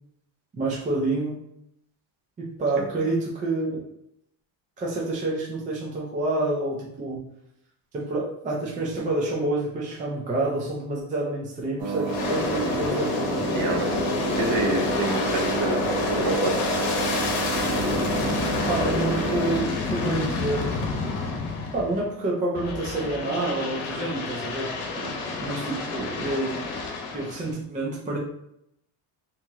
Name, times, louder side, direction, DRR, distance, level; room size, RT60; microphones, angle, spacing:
voice 1, 0.5-1.4 2.4-3.7 4.8-7.2 7.9-13.1 18.7-20.7 21.7-24.7 25.4-26.6 27.1-28.2, right 2 dB, 20° right, -3 dB, 0.3 m, -28 dB
sound 1, 11.8-19.6, right 6 dB, 75° right, 1.0 m, -30 dB
Aircraft, 12.0-22.1 22.6-27.5, left 4 dB, 80° left, 0.9 m, -28 dB
voice 2, 13.5-14.0 14.3-15.8 16.1-16.6 25.0-25.1, right 3 dB, 45° right, 2 dB, 0.7 m, -28 dB
3.0 x 2.8 x 3.5 m, 0.77 s
cardioid pair, 170°, 48 cm